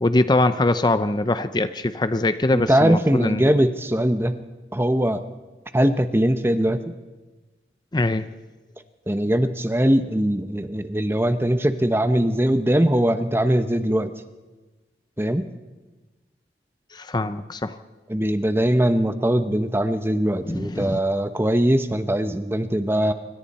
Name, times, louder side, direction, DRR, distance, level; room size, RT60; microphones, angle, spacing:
voice 1, 0.0-3.5 7.9-8.3 16.9-17.8 20.4-21.0, left 2 dB, 25° left, 11 dB, 0.6 m, -22 dB
voice 2, 2.5-4.3 4.7-5.2 5.7-6.9 9.1-14.1 15.2-15.5 18.1-23.1, right 1 dB, 15° right, 9 dB, 0.9 m, -21 dB
26.0 x 24.5 x 4.3 m, 1.2 s
head